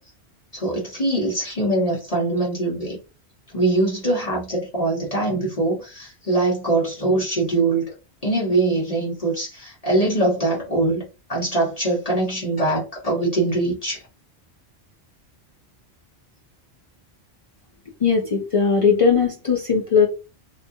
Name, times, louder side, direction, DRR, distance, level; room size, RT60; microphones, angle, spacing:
voice 1, 0.5-3.0 3.5-7.8 8.2-14.0, right 2 dB, 35° left, 1.1 m, -22 dB
voice 2, 18.0-20.1, left 5 dB, 55° left, 0.4 m, -18 dB
2.7 x 2.4 x 2.6 m
omnidirectional pair, 1.1 m